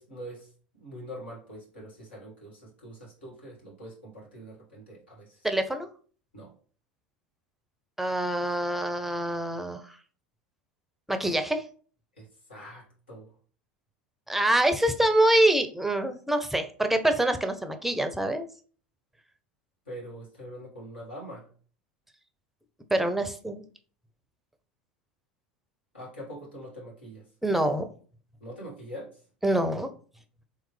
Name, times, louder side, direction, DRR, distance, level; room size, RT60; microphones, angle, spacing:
voice 1, 0.0-5.5 6.3-6.5 12.2-13.3 19.9-21.5 25.9-27.2 28.4-29.2, equal, 80° left, -4 dB, 1.5 m, -44 dB
voice 2, 5.4-5.9 8.0-9.8 11.1-11.6 14.3-18.4 22.9-23.6 27.4-27.9 29.4-29.9, right 1 dB, 5° right, 8 dB, 0.5 m, -25 dB
3.5 x 3.1 x 3.2 m, 0.42 s
figure-of-eight pair, 80°, 6 cm